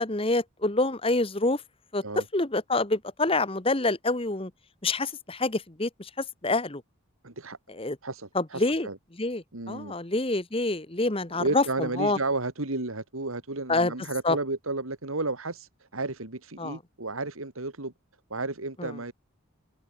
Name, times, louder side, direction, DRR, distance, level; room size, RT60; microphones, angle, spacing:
voice 1, 0.0-1.6 1.9-4.5 4.8-6.1 6.4-6.8 7.7-8.0 8.3-8.9 9.2-12.2 13.7-13.9 14.2-14.4 16.6-16.8 18.8-18.9, left 2 dB, 25° left, 1.4 m, -27 dB
voice 2, 7.2-7.6 8.0-9.0 9.5-9.9 11.4-17.9 18.3-19.1, right 2 dB, 80° right, 2.6 m, -32 dB
head